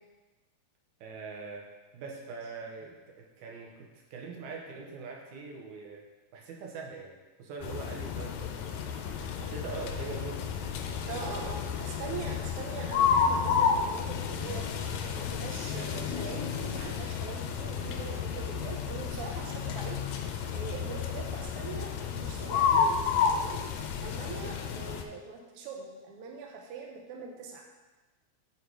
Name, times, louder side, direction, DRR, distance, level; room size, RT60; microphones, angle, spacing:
voice 1, 1.0-1.7 1.9-6.0 6.3-8.8 9.1-10.5 24.2-24.6, right 4 dB, 80° right, -1 dB, 2.4 m, -43 dB
sound 1, 7.6-25.0, left 6 dB, 85° left, 1.9 m, -31 dB
voice 2, 11.1-23.6 24.0-27.6, right 5 dB, 65° right, 0 dB, 1.6 m, -42 dB
7.8 x 4.3 x 4.7 m, 1.2 s
omnidirectional pair, 3.3 m